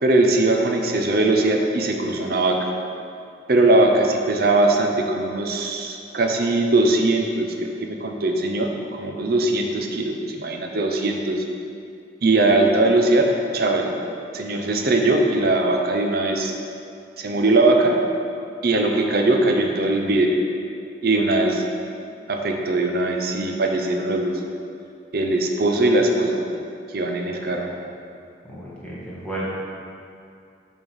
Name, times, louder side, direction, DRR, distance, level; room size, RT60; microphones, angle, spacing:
voice 1, 0.0-2.7 3.5-11.4 12.2-13.9 14.3-16.5 17.2-18.0 18.6-20.4 21.0-21.6 22.3-24.4 25.1-26.4 26.9-27.7, right 2 dB, 55° right, 3 dB, 0.7 m, -20 dB
voice 2, 28.5-29.5, right 1 dB, 5° left, -8 dB, 1.4 m, -33 dB
6.9 x 3.6 x 6.3 m, 2.5 s
head